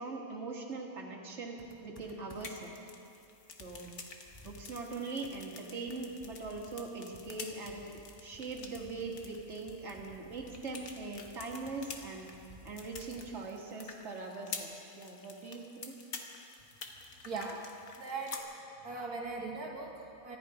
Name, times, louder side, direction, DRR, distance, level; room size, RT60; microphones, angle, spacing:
voice 1, 0.0-2.7 3.6-3.9 4.4-12.3 12.6-15.9, right 3 dB, 50° right, -1 dB, 2.1 m, -41 dB
Computer keyboard, 1.6-2.8 3.2-3.3 3.6-13.5, left 1 dB, 15° left, 1.8 m, -57 dB
sound 1, 2.3-18.4, left 4 dB, 65° left, 1.6 m, -49 dB
voice 2, 17.3-17.7 18.0-18.5 18.8-20.4, right 3 dB, 75° right, 0 dB, 1.9 m, -39 dB
25.5 x 11.0 x 5.0 m, 2.7 s
omnidirectional pair, 1.6 m